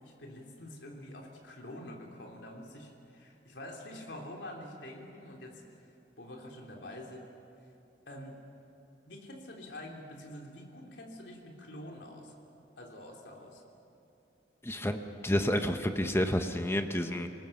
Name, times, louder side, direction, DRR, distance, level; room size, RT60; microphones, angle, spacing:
voice 1, 0.0-5.6 6.2-7.3 8.1-8.4 9.1-12.3 12.8-13.6, left 1 dB, 90° left, 0 dB, 3.4 m, -46 dB
voice 2, 14.6-17.3, left 1 dB, 15° left, 6 dB, 1.0 m, -30 dB
27.5 x 19.0 x 7.3 m, 2.7 s
head